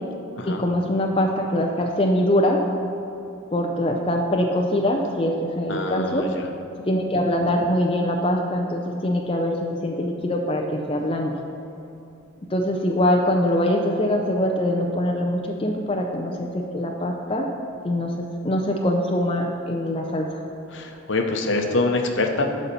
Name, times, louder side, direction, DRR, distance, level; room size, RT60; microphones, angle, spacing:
voice 1, 0.5-2.6 3.5-6.3 6.9-11.4 12.5-17.5 17.8-20.4, left 1 dB, 25° left, 1 dB, 0.5 m, -23 dB
voice 2, 5.7-6.5 20.7-22.6, left 2 dB, 65° left, 3 dB, 0.9 m, -25 dB
11.5 x 4.2 x 6.8 m, 2.8 s
head